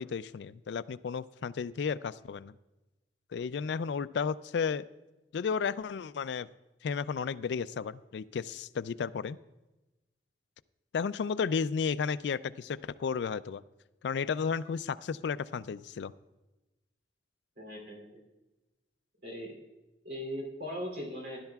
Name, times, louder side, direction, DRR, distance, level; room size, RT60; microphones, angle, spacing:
voice 1, 0.0-2.5 3.3-4.9 5.3-6.5 6.8-9.4 10.9-13.6 14.0-16.1, left 6 dB, 70° left, 16 dB, 0.3 m, -33 dB
voice 2, 17.6-18.2 19.2-19.6 20.0-21.4, equal, 65° right, 0 dB, 2.9 m, -39 dB
17.5 x 11.5 x 2.3 m, 1.1 s
head